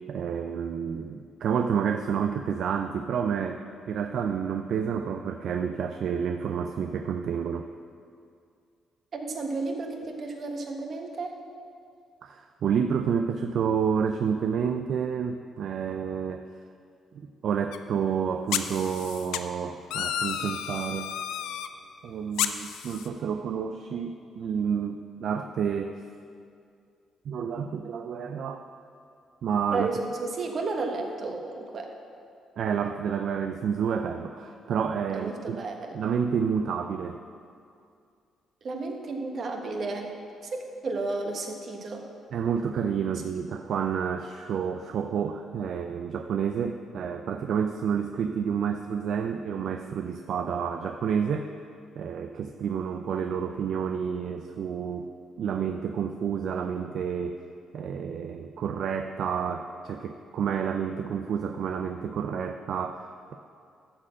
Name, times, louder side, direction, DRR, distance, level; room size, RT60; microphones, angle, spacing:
voice 1, 0.1-3.6 3.9-7.7 12.2-16.4 17.1-21.1 22.0-25.9 27.3-28.6 29.4-29.9 32.6-35.6 35.9-37.2 42.3-51.5 52.0-55.1 55.4-57.4 57.7-63.4, right 7 dB, 65° right, 6 dB, 0.4 m, -29 dB
voice 2, 9.1-11.4 29.7-31.9 35.1-36.0 38.6-40.1 40.4-42.1, right 3 dB, 50° right, 3 dB, 1.3 m, -32 dB
sound 1, 17.7-17.8 18.5-19.4 19.9-21.7 22.4-23.1, left 9 dB, 90° left, 0.4 m, -31 dB
12.5 x 4.3 x 7.5 m, 2.4 s
cardioid pair, 90°, 0 cm